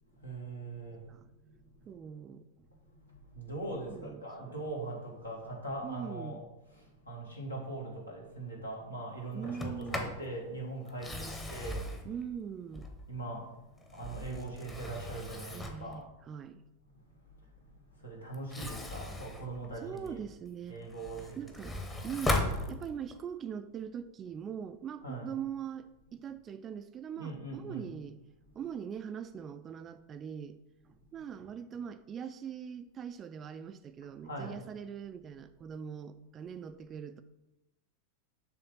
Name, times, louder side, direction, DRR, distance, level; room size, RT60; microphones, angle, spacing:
voice 1, 0.1-2.0 2.7-12.0 13.1-16.1 17.0-20.2 20.7-21.7 25.0-25.4 27.2-27.9 28.5-28.7 34.2-34.6, right 2 dB, 85° left, -2 dB, 1.7 m, -42 dB
voice 2, 1.9-2.5 3.9-4.3 5.8-6.4 9.3-10.2 11.1-11.6 12.1-12.9 15.5-16.6 19.8-20.8 21.4-28.2 28.6-30.6 30.8-37.2, right 8 dB, 25° right, 10 dB, 0.3 m, -42 dB
Sliding door, 9.4-10.2 10.9-13.2 13.8-15.9 18.3-20.3 20.7-23.2, left 2 dB, 15° left, 0.8 m, -38 dB
7.0 x 3.2 x 5.5 m, 0.95 s
figure-of-eight pair, 90°, 0 cm